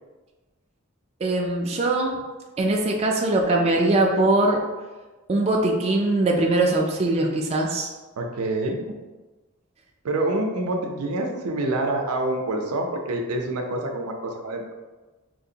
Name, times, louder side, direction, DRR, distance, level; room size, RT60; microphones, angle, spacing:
voice 1, 1.2-2.2 2.6-4.6 5.3-7.9, right 2 dB, 30° right, 0 dB, 0.3 m, -21 dB
voice 2, 8.2-8.8 10.0-14.6, right 2 dB, 90° right, 3 dB, 0.5 m, -26 dB
4.4 x 2.5 x 2.7 m, 1.2 s
head